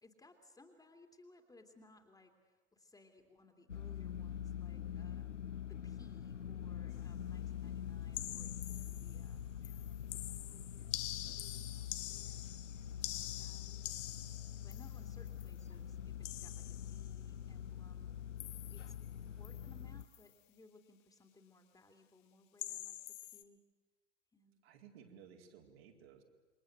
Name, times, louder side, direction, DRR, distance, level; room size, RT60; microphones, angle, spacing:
voice 1, 0.0-5.3 5.7-12.5 13.1-14.0 14.6-18.1 18.7-18.9 19.2-23.0 23.3-23.6 24.3-24.6, left 2 dB, 10° left, 5 dB, 2.8 m, -63 dB
sound 1, 3.7-20.0, left 9 dB, 85° left, 0.9 m, -45 dB
sound 2, 8.1-9.3 9.6-15.6 16.2-17.2 18.4-19.1 19.4-19.7 20.0-20.3 22.6-23.4, left 15 dB, 45° left, 1.5 m, -46 dB
voice 2, 24.6-26.2, right 7 dB, 55° right, 1 dB, 4.4 m, -58 dB
28.0 x 23.5 x 8.0 m, 1.2 s
figure-of-eight pair, 90°, 35 cm